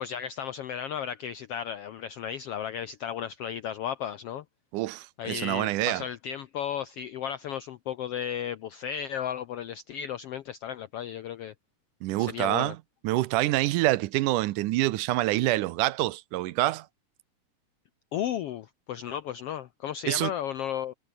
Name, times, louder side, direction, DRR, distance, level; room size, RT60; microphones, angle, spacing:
voice 1, 0.0-4.4 5.2-11.5 12.2-12.7 18.1-20.9, left 9 dB, 75° left, 1.3 m, -34 dB
voice 2, 4.7-6.0 12.0-12.8 13.0-16.9 20.0-20.3, right 17 dB, 85° right, 2.2 m, -26 dB
omnidirectional pair, 3.7 m